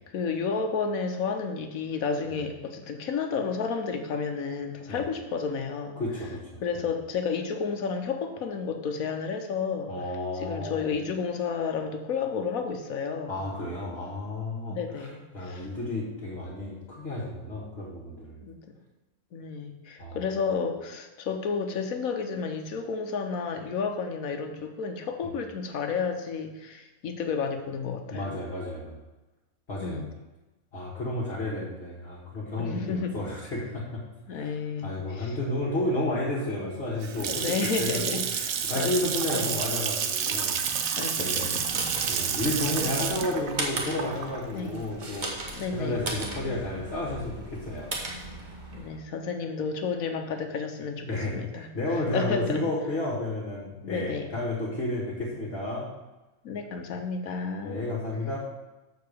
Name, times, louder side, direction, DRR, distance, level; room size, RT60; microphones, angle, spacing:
voice 1, 0.1-6.0 6.6-9.9 10.3-13.4 14.7-15.7 18.4-18.6 19.3-28.3 29.8-30.1 32.6-33.2 34.3-35.4 35.9-36.0 37.3-38.9 39.3-39.6 41.0-41.9 42.8-43.2 44.5-44.8 45.5-46.0 48.7-51.7 52.1-52.6 53.8-54.3 56.4-57.8, left 5 dB, 75° left, 6 dB, 1.2 m, -31 dB
voice 2, 6.0-6.5 6.7-6.8 9.9-10.9 13.3-18.4 20.0-20.2 25.2-25.3 28.1-29.0 29.7-30.0 30.7-34.0 34.3-38.0 38.7-40.6 41.2-41.5 42.1-47.9 51.0-55.9 57.6-58.4, left 1 dB, 45° left, -4 dB, 1.7 m, -32 dB
Water tap faucet / Sink (filling or washing) / Splash splatter, 36.8-45.6, right 7 dB, 70° right, 1.1 m, -30 dB
sound 1, 41.3-49.0, right 2 dB, 35° right, 1.2 m, -37 dB
6.7 x 4.6 x 6.7 m, 1.1 s
omnidirectional pair, 1.5 m